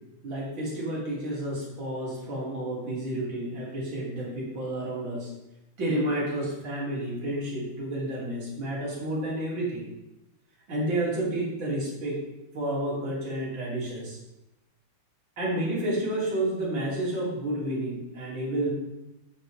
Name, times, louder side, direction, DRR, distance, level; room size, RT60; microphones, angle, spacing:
voice 1, 0.2-5.3 5.8-9.9 10.7-12.2 12.5-14.2 15.4-18.7, right 1 dB, 65° right, -5 dB, 2.9 m, -30 dB
7.2 x 6.9 x 3.2 m, 0.95 s
omnidirectional pair, 2.3 m